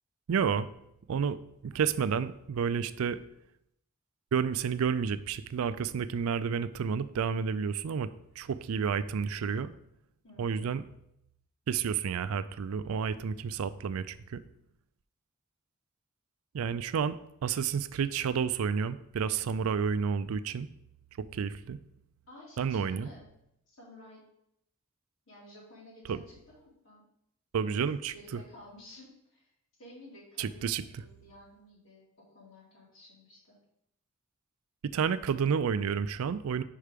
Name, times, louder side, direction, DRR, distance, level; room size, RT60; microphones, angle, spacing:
voice 1, 0.3-0.7 1.1-1.4 1.6-3.2 4.3-8.1 8.4-9.7 10.4-10.8 11.7-14.4 16.5-17.2 17.4-20.7 21.3-21.8 22.6-23.1 26.1-26.2 27.5-28.4 30.4-30.8 34.9-36.6, right 6 dB, 80° right, 14 dB, 0.4 m, -30 dB
voice 2, 10.2-10.6 22.3-23.3 23.7-24.2 25.3-27.0 27.6-27.8 28.1-29.5 29.8-33.6, left 1 dB, 65° left, -5 dB, 2.6 m, -53 dB
5.5 x 4.8 x 5.1 m, 0.78 s
head